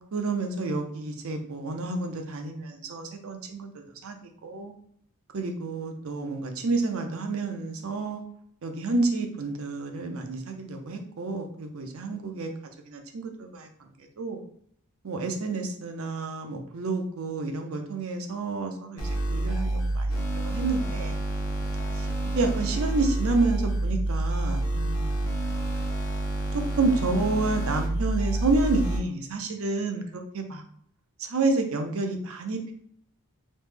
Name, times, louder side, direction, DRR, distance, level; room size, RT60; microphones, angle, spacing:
voice 1, 0.1-4.2 4.4-4.7 5.3-8.2 8.6-12.5 12.9-13.7 14.2-14.4 15.0-21.2 22.0-22.1 22.3-25.2 26.5-30.6 31.2-32.7, right 3 dB, 70° right, 5 dB, 0.5 m, -29 dB
sound 1, 19.0-29.0, right 2 dB, 70° left, 0.8 m, -28 dB
3.1 x 2.1 x 3.3 m, 0.65 s
head